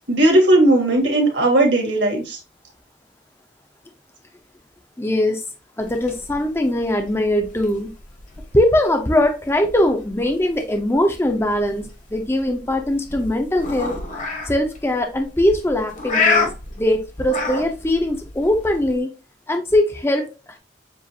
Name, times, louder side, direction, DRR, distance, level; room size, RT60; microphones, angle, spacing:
voice 1, 0.1-2.4, right 1 dB, 70° right, 1.9 m, -16 dB
voice 2, 5.0-5.4 5.8-7.9 8.5-14.0 14.4-16.5 16.8-19.1 19.5-20.3, left 1 dB, 15° left, 0.6 m, -21 dB
sound 1, 5.8-19.0, left 4 dB, 40° left, 1.1 m, -29 dB
7.4 x 2.5 x 2.7 m
head